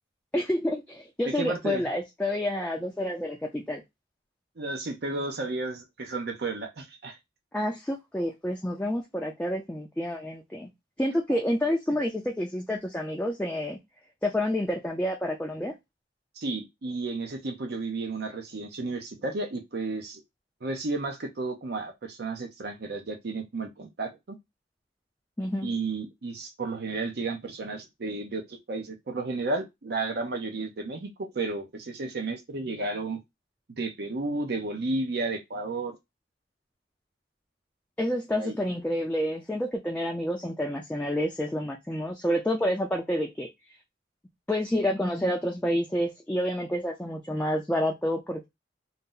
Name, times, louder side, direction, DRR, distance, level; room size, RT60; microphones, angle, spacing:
voice 1, 0.3-3.8 7.5-10.7 11.0-13.8 14.2-15.7 25.4-25.7 38.0-43.5 44.5-48.5, equal, 5° left, 0.4 m, -29 dB
voice 2, 1.3-1.8 4.6-7.2 11.3-11.4 16.4-20.2 20.6-24.4 25.6-33.2 33.8-36.0 38.3-38.6, right 3 dB, 60° right, 0.6 m, -32 dB
2.7 x 2.0 x 3.6 m
head